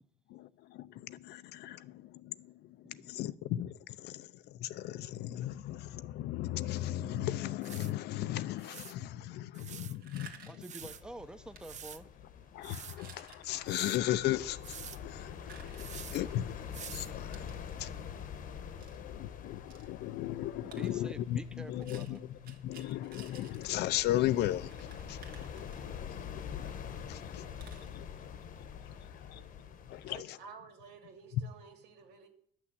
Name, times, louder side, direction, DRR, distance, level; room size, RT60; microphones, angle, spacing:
voice 1, 0.3-10.5 12.5-17.5 17.7-17.9 18.3-26.7 27.1-27.5 27.9-28.4 28.8-29.4 29.9-30.4, left 14 dB, 80° left, 0.6 m, -37 dB
sound 1, 6.9-7.0 7.6-7.9 8.6-8.9 9.5-9.9 10.6-11.0 11.6-12.0 12.6-13.0 13.7-14.0 14.6-15.0 15.8-16.2 16.7-17.1 17.8-17.9, right 8 dB, 45° right, 0.7 m, -47 dB
sound 2, 9.9-10.7 11.5-11.6 12.1-12.4 12.8-14.0 14.8-16.4 17.3-17.6 18.8-19.0 19.7-19.9 20.7-21.0 21.8-23.7 24.1-24.2 24.4-24.5 24.7-26.1 26.7-26.8 27.0-27.1 27.6-27.9, right 7 dB, 60° right, 1.8 m, -55 dB
voice 2, 10.5-12.1 20.6-22.2, right 1 dB, 5° right, 0.7 m, -47 dB
sound 3, 10.8-30.2, left 7 dB, 55° left, 1.0 m, -46 dB
voice 3, 29.3-29.6 30.1-32.3, right 5 dB, 85° right, 2.5 m, -53 dB
11.5 x 6.2 x 7.9 m
cardioid pair, 110°, 17 cm